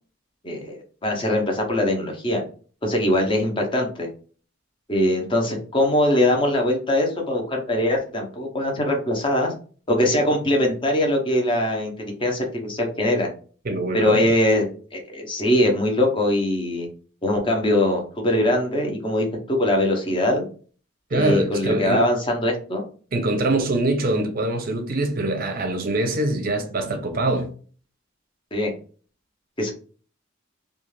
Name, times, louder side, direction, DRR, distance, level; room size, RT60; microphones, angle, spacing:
voice 1, 0.4-0.8 1.0-2.4 2.8-4.1 4.9-9.5 9.9-13.3 13.9-16.9 17.2-20.4 21.1-22.8 28.5-28.7 29.6-29.7, left 1 dB, 25° left, 0.6 m, -22 dB
voice 2, 13.6-14.3 21.1-22.1 23.1-27.5, right 2 dB, 45° right, 0.5 m, -24 dB
2.4 x 2.3 x 3.1 m
head